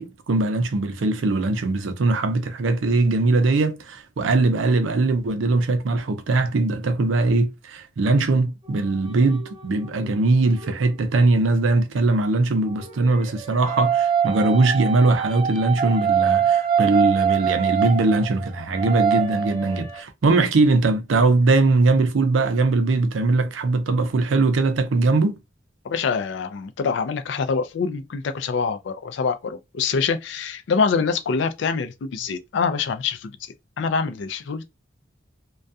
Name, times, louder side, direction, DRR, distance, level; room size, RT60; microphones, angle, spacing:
voice 1, 0.0-25.4, right 3 dB, 85° right, 0.5 m, -21 dB
sound 1, 8.6-10.7 12.7-20.0, right 8 dB, 25° right, 0.5 m, -24 dB
voice 2, 25.8-33.3 33.8-34.6, left 5 dB, 70° left, 0.4 m, -25 dB
2.3 x 2.2 x 2.6 m
head